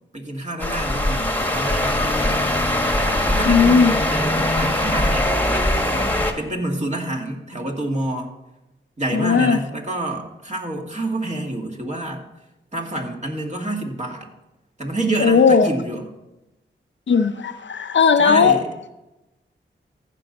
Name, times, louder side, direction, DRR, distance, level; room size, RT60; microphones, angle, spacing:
voice 1, 0.1-2.5 3.2-5.3 5.9-8.3 9.0-12.2 12.7-14.3 14.8-16.1 18.2-18.7, right 1 dB, 35° right, 1 dB, 2.3 m, -28 dB
sound 1, 0.6-6.3, left 1 dB, 10° left, 1.6 m, -21 dB
voice 2, 3.5-4.0 9.1-9.6 15.2-15.7 17.1-18.6, left 5 dB, 65° left, 9 dB, 0.7 m, -16 dB
15.0 x 5.5 x 4.1 m, 0.97 s
cardioid pair, 45°, 20 cm